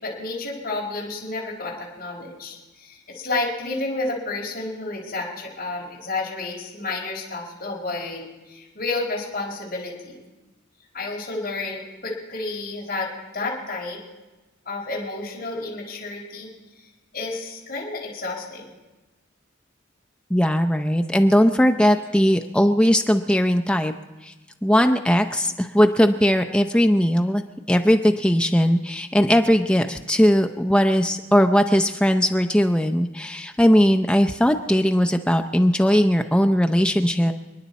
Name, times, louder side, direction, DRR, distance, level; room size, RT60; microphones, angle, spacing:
voice 1, 0.0-10.3 10.9-14.0 14.6-16.5 17.1-18.7, left 3 dB, 45° left, -4 dB, 4.6 m, -31 dB
voice 2, 20.3-23.9 24.2-24.3 24.6-27.4 27.7-37.3, equal, 5° left, 6 dB, 0.5 m, -19 dB
30.0 x 10.0 x 4.2 m, 1.1 s
head